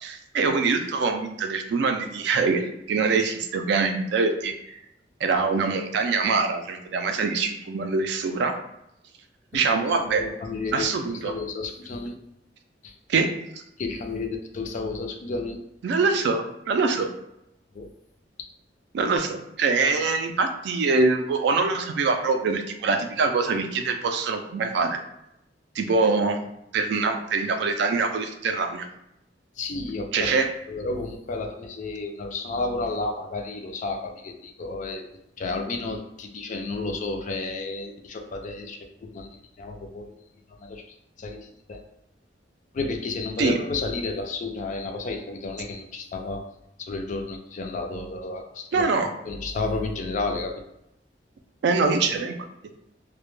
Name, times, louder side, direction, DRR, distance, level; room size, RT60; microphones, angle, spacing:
voice 1, 0.0-4.8 5.2-8.5 9.5-10.2 10.7-11.3 13.1-13.3 13.5-13.6 15.8-17.1 18.9-25.0 25.8-26.4 26.7-28.9 30.1-30.5 43.4-43.6 48.7-49.1 51.6-52.3, right 4 dB, 65° right, 5 dB, 0.3 m, -24 dB
voice 2, 10.1-10.9 11.2-12.1 12.8-12.9 13.8-15.6 17.7-17.9 18.4-18.5 29.6-30.3 30.7-35.0 35.4-39.3 39.6-40.1 40.6-40.8 41.2-41.8 42.7-46.4 46.8-48.8 49.3-50.6, left 3 dB, 45° left, 4 dB, 0.3 m, -31 dB
2.1 x 2.1 x 3.0 m, 0.82 s
head